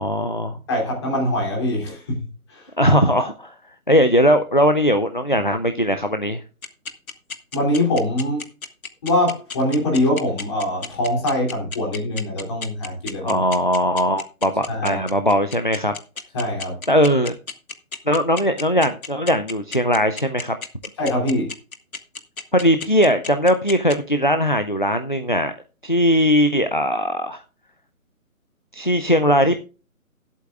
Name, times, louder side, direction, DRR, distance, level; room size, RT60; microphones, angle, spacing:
voice 1, 0.0-0.6 2.8-3.5 3.9-6.4 13.2-15.9 16.9-17.4 18.1-20.6 22.5-25.5 25.8-27.4 28.7-29.6, equal, 35° left, 9 dB, 0.4 m, -19 dB
voice 2, 0.7-2.2 2.5-2.7 7.5-8.4 9.0-13.4 14.7-15.0 16.3-16.8 21.0-21.5, left 1 dB, 20° left, -1 dB, 2.9 m, -23 dB
sound 1, 6.6-23.9, left 5 dB, 75° left, 1.6 m, -32 dB
19.0 x 8.3 x 2.4 m, 0.33 s
hypercardioid pair, 175°, 43 cm